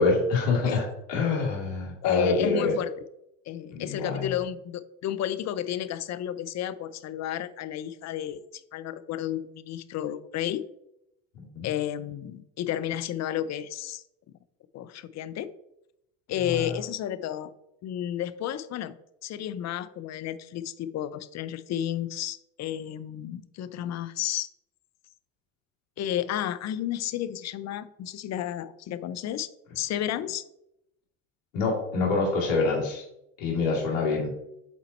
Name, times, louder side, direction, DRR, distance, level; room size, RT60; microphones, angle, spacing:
voice 1, 0.0-2.7 3.7-4.3 11.3-11.7 16.4-16.7 31.5-33.0 33.4-34.3, left 3 dB, 85° left, -5 dB, 2.7 m, -26 dB
voice 2, 2.0-2.9 3.5-8.4 8.7-10.6 11.6-14.0 14.7-15.5 16.3-17.5 17.8-18.9 19.2-24.5 26.0-29.5 29.8-30.4, left 11 dB, 45° left, 14 dB, 0.6 m, -32 dB
7.1 x 4.1 x 4.2 m, 0.82 s
supercardioid pair, 80°, 38 cm